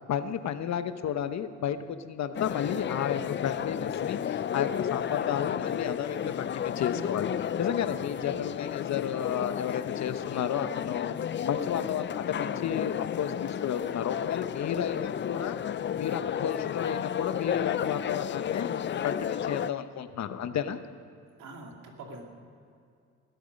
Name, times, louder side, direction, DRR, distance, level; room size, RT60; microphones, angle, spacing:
voice 1, 0.1-15.6 16.0-20.8, left 8 dB, 65° left, 10 dB, 1.1 m, -32 dB
sound 1, 2.3-19.7, left 9 dB, 40° left, 0.5 m, -32 dB
voice 2, 21.4-22.2, right 2 dB, 80° right, 1 dB, 2.7 m, -44 dB
21.0 x 13.0 x 5.3 m, 2.4 s
cardioid pair, 90°, 30 cm